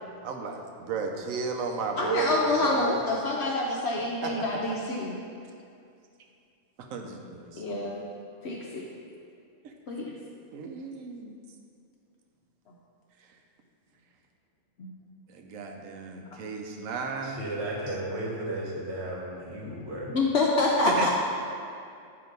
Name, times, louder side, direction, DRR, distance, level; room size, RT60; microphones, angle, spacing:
voice 1, 0.2-3.0 4.2-4.5 6.8-7.9 9.6-9.7 10.5-11.3 15.3-17.4 17.9-18.0 20.7-21.1, right 4 dB, 70° right, 3 dB, 0.9 m, -34 dB
voice 2, 2.0-5.2 7.6-8.0 8.4-8.9 9.9-10.2 14.8-14.9 20.1-21.1, left 2 dB, 60° left, -3 dB, 0.7 m, -27 dB
voice 3, 17.2-20.2, right 1 dB, 50° right, -3 dB, 1.3 m, -34 dB
7.7 x 2.9 x 5.2 m, 2.4 s
omnidirectional pair, 1.5 m